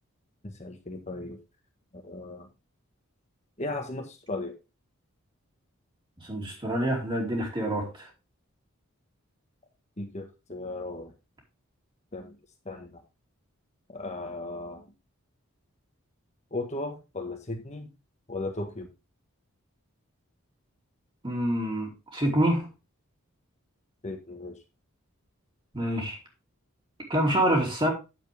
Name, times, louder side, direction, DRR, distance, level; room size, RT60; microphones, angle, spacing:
voice 1, 0.4-1.4 2.0-2.5 3.6-4.5 10.0-11.1 12.1-12.3 12.6-13.0 13.9-14.8 16.5-17.9 18.3-18.9 24.0-24.6, left 2 dB, 35° left, 4 dB, 1.4 m, -36 dB
voice 2, 6.2-8.1 21.2-22.7 25.7-26.2 27.1-27.9, right 1 dB, 25° right, -1 dB, 2.9 m, -26 dB
9.2 x 7.4 x 3.5 m, 0.28 s
head